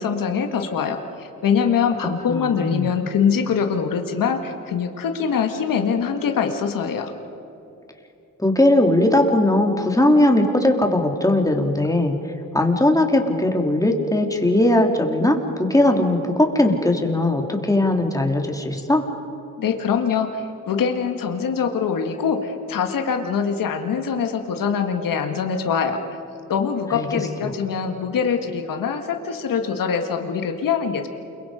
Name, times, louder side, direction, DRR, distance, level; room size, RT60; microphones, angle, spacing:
voice 1, 0.0-7.1 19.6-26.0 26.5-31.1, left 6 dB, 70° left, 5 dB, 1.8 m, -23 dB
voice 2, 2.3-2.9 8.4-12.1 12.5-19.0 26.9-27.1 27.4-27.5, left 1 dB, 10° left, 2 dB, 3.3 m, -19 dB
29.0 x 23.0 x 5.1 m, 2.9 s
supercardioid pair, 60°, 34 cm